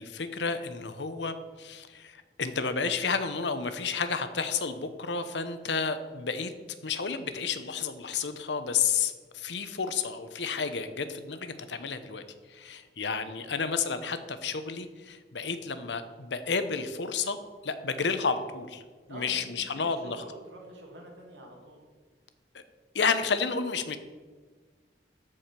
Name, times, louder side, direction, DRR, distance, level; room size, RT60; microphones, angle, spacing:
voice 1, 0.0-6.5 6.8-12.2 12.5-17.4 17.6-18.8 19.1-20.2 22.5-22.6 22.9-24.0, left 5 dB, 75° left, 10 dB, 0.9 m, -31 dB
voice 2, 13.4-13.9 19.1-21.8, right 1 dB, 85° right, -1 dB, 2.6 m, -47 dB
14.0 x 5.0 x 5.9 m, 1.4 s
head